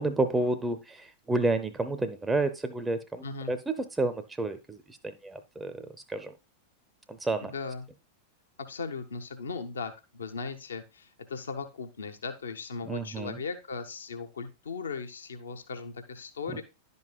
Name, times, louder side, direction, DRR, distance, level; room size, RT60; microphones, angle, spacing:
voice 1, 0.0-4.8 5.0-6.3 7.1-7.5 12.9-13.3, right 2 dB, 10° right, 0.5 m, -30 dB
voice 2, 3.2-3.6 7.4-7.9 8.6-16.6, left 5 dB, 70° left, 0.7 m, -38 dB
10.5 x 5.4 x 2.3 m
figure-of-eight pair, 90°, 0 cm